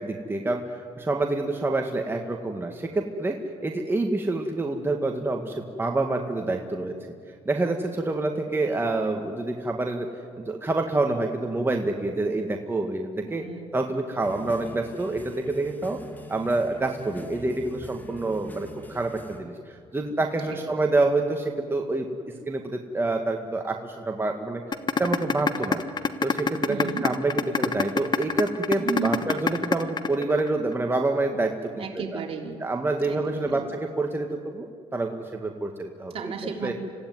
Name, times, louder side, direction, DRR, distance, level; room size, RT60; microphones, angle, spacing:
voice 1, 0.0-3.4 3.6-6.9 7.5-10.1 10.4-13.4 13.7-16.0 16.3-19.5 19.9-22.1 22.5-24.6 25.0-25.8 26.2-31.8 32.1-32.2 32.6-34.7 34.9-36.3 36.6-36.7, right 2 dB, 20° right, 2 dB, 1.9 m, -27 dB
voice 2, 13.2-13.8 20.5-20.8 26.7-27.1 28.8-29.4 31.7-32.6 33.0-33.7 36.1-36.7, right 6 dB, 50° right, 1 dB, 3.8 m, -34 dB
sound 1, 14.2-19.4, left 1 dB, 15° left, 2.7 m, -44 dB
sound 2, 24.7-30.7, left 5 dB, 35° left, 1.4 m, -24 dB
26.0 x 16.0 x 9.6 m, 2.2 s
supercardioid pair, 75°, 12 cm